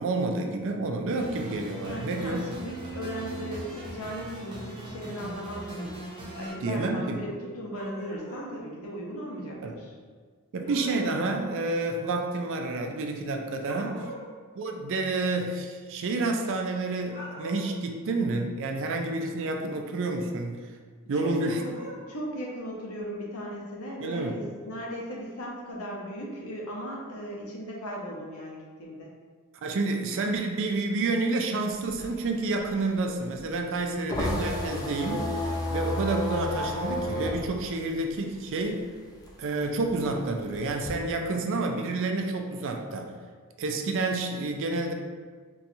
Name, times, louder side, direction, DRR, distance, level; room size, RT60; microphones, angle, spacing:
voice 1, 0.0-2.5 6.6-7.2 9.6-9.8 10.5-14.0 14.6-20.7 21.1-21.6 24.0-24.4 29.6-38.8 39.4-43.1 43.6-44.9, right 2 dB, 60° right, 3 dB, 0.4 m, -29 dB
sound 1, 1.2-6.5, right 1 dB, 25° right, 0.7 m, -39 dB
voice 2, 1.8-6.0 6.4-9.9 13.8-14.1 21.1-21.8 22.1-29.1, equal, 75° left, -3 dB, 0.8 m, -37 dB
sound 2, 7.7-8.5 10.6-11.5 13.7-14.3 17.0-17.8 21.4-22.0, right 1 dB, 35° left, 1.0 m, -42 dB
sound 3, 31.7-38.8 39.1-40.9, left 1 dB, 15° left, 0.4 m, -32 dB
4.0 x 2.3 x 2.6 m, 1.6 s
head